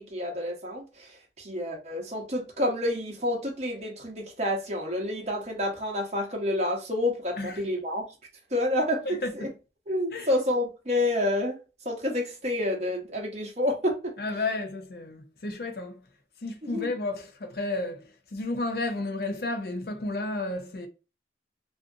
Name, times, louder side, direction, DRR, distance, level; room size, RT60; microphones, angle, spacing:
voice 1, 0.0-8.1 8.5-9.1 9.4-9.5 9.9-11.6 11.8-14.1 16.6-16.9, left 1 dB, 40° right, 0.8 m, -29 dB
voice 2, 14.2-16.0 16.4-20.9, left 2 dB, 60° left, 0.5 m, -32 dB
2.5 x 2.5 x 2.5 m
head